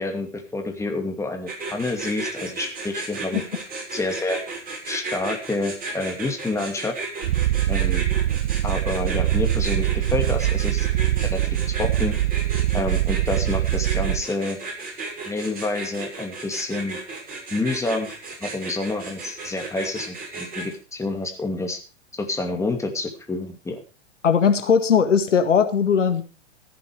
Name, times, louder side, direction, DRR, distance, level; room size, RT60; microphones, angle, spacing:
voice 1, 0.0-3.4 3.9-4.4 4.8-7.0 7.7-8.0 8.6-10.9 11.2-11.4 11.7-12.1 12.7-14.6 15.3-17.0 17.5-18.1 18.4-21.8 22.2-23.8, left 2 dB, 10° left, 4 dB, 2.5 m, -28 dB
sound 1, 1.5-20.7, right 3 dB, 25° right, 6.8 m, -34 dB
Purr, 7.2-14.2, right 14 dB, 60° right, 0.6 m, -23 dB
voice 2, 24.2-26.2, left 6 dB, 75° left, 8 dB, 1.9 m, -18 dB
14.5 x 10.5 x 4.8 m, 0.35 s
figure-of-eight pair, 100°, 36 cm